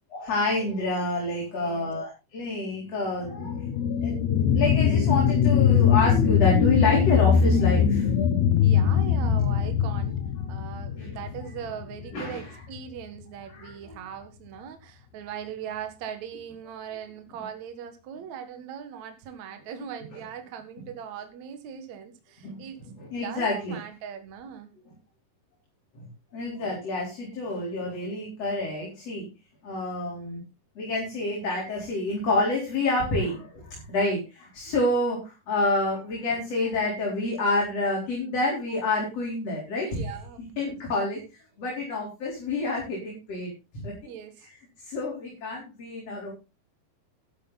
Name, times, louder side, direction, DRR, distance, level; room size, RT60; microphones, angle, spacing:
voice 1, 0.1-8.7 10.9-11.2 12.1-12.4 13.5-14.0 22.4-22.7 23.0-23.8 25.9-26.0 26.3-29.3 29.6-30.4 30.8-40.0 40.6-44.1 44.8-46.3, left 2 dB, 45° left, -3 dB, 5.1 m, -28 dB
voice 2, 1.5-1.9 8.6-10.2 10.5-22.8 23.1-24.7 39.9-40.7 44.1-44.5, right 8 dB, 55° right, 7 dB, 2.7 m, -40 dB
sound 1, 3.2-12.3 12.8-12.9, left 8 dB, 65° left, 1.9 m, -22 dB
12.0 x 12.0 x 4.1 m, 0.29 s
omnidirectional pair, 4.2 m